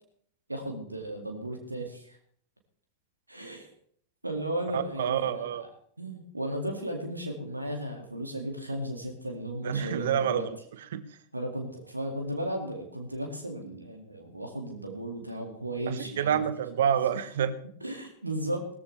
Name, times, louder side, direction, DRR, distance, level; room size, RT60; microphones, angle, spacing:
voice 1, 0.5-2.2 3.3-3.7 4.2-5.7 6.0-10.5 11.3-16.4 16.8-16.9 17.8-18.6, right 1 dB, 85° right, 3 dB, 2.2 m, -35 dB
voice 2, 4.7-5.6 9.6-10.4 10.9-11.0 15.9-17.5, right 9 dB, 60° right, 13 dB, 1.1 m, -28 dB
19.0 x 13.5 x 3.4 m, 0.62 s
figure-of-eight pair, 90°, 0 cm